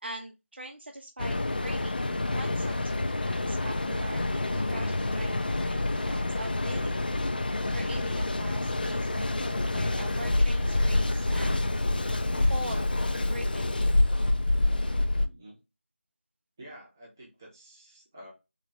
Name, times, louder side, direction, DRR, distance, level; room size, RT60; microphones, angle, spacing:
voice 1, 0.0-7.0 7.2-11.6 12.3-12.9 13.3-13.9, right 1 dB, 55° right, 4 dB, 0.5 m, -43 dB
Mechanical fan, 1.2-15.3, left 2 dB, 45° left, 0.3 m, -27 dB
voice 2, 15.1-15.6 16.6-18.3, equal, 15° right, -3 dB, 0.8 m, -50 dB
3.6 x 2.5 x 3.1 m, 0.25 s
figure-of-eight pair, 170°, 7 cm